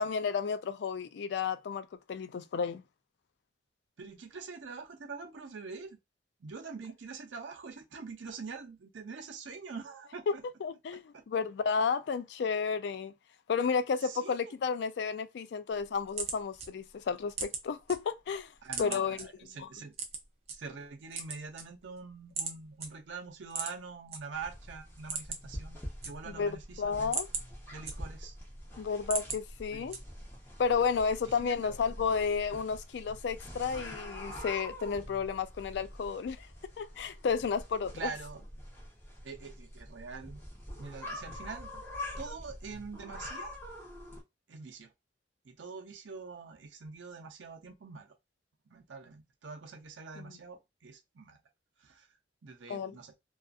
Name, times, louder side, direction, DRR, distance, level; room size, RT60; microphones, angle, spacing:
voice 1, 0.0-2.8 10.6-13.1 13.5-18.5 18.8-19.2 26.4-26.5 26.8-27.3 28.8-30.0 30.6-36.5 36.8-37.9 50.2-50.3 52.7-53.0, left 5 dB, 65° left, 0.3 m, -32 dB
voice 2, 4.0-6.0 6.4-10.4 11.1-11.2 14.0-14.4 18.6-19.9 20.5-27.2 27.7-28.4 29.7-30.0 31.2-31.8 37.9-38.5 39.2-40.4 40.8-41.8 42.2-43.5 44.5-44.9 45.4-48.2 48.7-51.4 51.8-53.1, right 5 dB, 85° right, 0.6 m, -45 dB
sound 1, 15.7-18.0 18.3-19.2 19.9-20.6 21.0-22.0 22.4-22.5 22.8-22.9 23.5-24.2 24.5-24.6 24.9-25.6 25.8-26.5 26.9-28.4 28.8-29.4 29.9-30.3, right 5 dB, 35° right, 0.5 m, -37 dB
sound 2, 24.3-44.2, left 1 dB, 15° left, 0.8 m, -45 dB
2.5 x 2.4 x 2.3 m
head